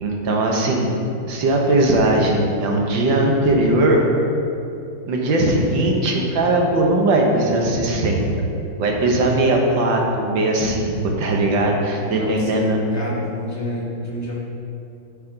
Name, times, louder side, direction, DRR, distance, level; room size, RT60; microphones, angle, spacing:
voice 1, 0.0-0.9 1.3-4.0 5.1-8.2 8.8-12.8, right 2 dB, 65° right, 0 dB, 1.6 m, -19 dB
voice 2, 12.0-12.6 12.9-14.4, equal, 10° left, -6 dB, 1.2 m, -29 dB
9.6 x 6.0 x 3.9 m, 2.6 s
omnidirectional pair, 2.4 m